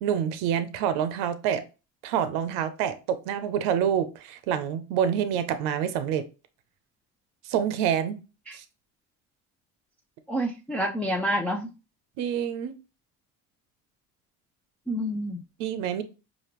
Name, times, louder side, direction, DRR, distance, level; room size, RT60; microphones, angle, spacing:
voice 1, 0.0-1.6 2.0-6.2 7.4-8.2 8.5-8.6 12.2-12.8 15.6-16.0, right 9 dB, 80° right, 11 dB, 0.7 m, -27 dB
voice 2, 10.3-11.7 14.9-15.4, equal, 5° left, -2 dB, 0.6 m, -28 dB
4.9 x 2.5 x 3.0 m, 0.31 s
supercardioid pair, 80°, 41 cm